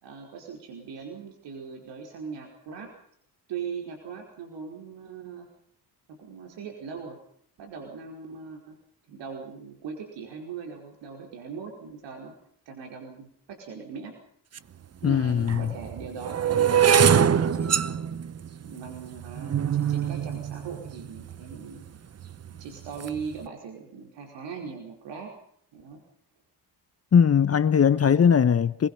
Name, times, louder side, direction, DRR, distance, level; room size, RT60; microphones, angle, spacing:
voice 1, 0.0-2.9 3.5-5.5 6.1-7.2 7.6-8.8 9.1-12.4 12.6-14.2 15.0-18.0 18.6-21.9 22.6-25.3 25.7-26.0, right 6 dB, 90° right, 5.1 m, -40 dB
sound 1, 14.6-14.7 15.4-21.6 22.2-22.6 22.8-23.2, right 8 dB, 35° right, 0.9 m, -24 dB
voice 2, 15.0-15.7 27.1-28.9, left 7 dB, 35° left, 1.0 m, -20 dB
28.0 x 21.5 x 5.7 m
cardioid pair, 130°, 42 cm